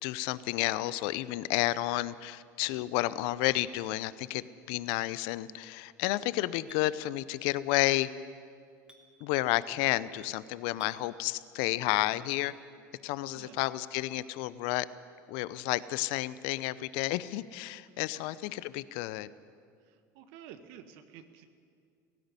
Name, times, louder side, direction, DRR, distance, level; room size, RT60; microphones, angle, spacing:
voice 1, 0.0-8.1 9.2-12.5 13.0-14.9 15.3-19.3, left 17 dB, 60° left, 17 dB, 0.7 m, -31 dB
Chink clink, 6.7-6.8 8.9-9.0 10.8-11.0 12.3-12.5, right 1 dB, 10° right, 3.0 m, -54 dB
voice 2, 19.9-21.5, right 9 dB, 65° right, 9 dB, 1.5 m, -51 dB
17.0 x 16.0 x 9.7 m, 2.2 s
hypercardioid pair, 80°, 10 cm